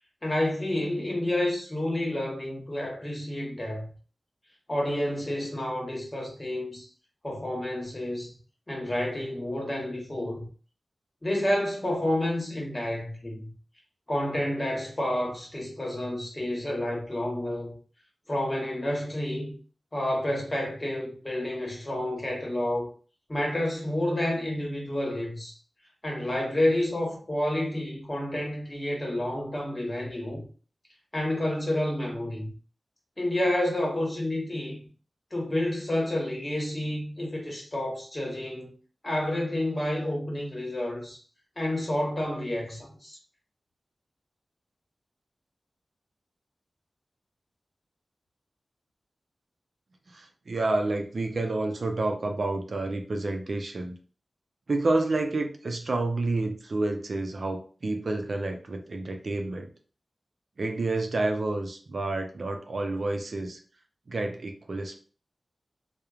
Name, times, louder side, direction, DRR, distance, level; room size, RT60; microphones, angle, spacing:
voice 1, 0.2-3.9 4.7-6.9 7.2-8.3 8.7-10.5 11.2-13.5 14.1-17.8 18.3-19.5 19.9-22.9 23.3-25.5 26.0-30.4 31.1-32.5 33.2-34.8 35.3-38.7 39.0-41.2 41.6-43.2, left 1 dB, 30° left, 1.1 m, -29 dB
voice 2, 50.1-53.9 54.7-59.7 60.6-63.6 64.1-65.0, right 2 dB, 70° right, 0.4 m, -29 dB
3.0 x 2.0 x 2.4 m
cardioid pair, 50°, 0 cm